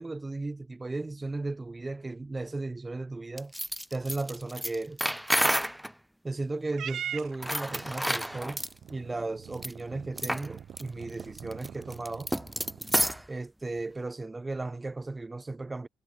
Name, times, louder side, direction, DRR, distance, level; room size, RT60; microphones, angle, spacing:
voice 1, 0.0-3.5 3.9-5.1 6.2-8.6 8.9-12.3 13.3-15.9, right 2 dB, 20° right, 0.8 m, -35 dB
sound 1, 3.4-5.9 7.3-8.7 9.5-9.7 10.2-10.5 10.8-10.9 11.2-13.3, equal, 5° right, 0.4 m, -30 dB
Purr / Meow, 6.7-13.2, right 9 dB, 55° right, 0.6 m, -43 dB
hypercardioid pair, 55°, 0 cm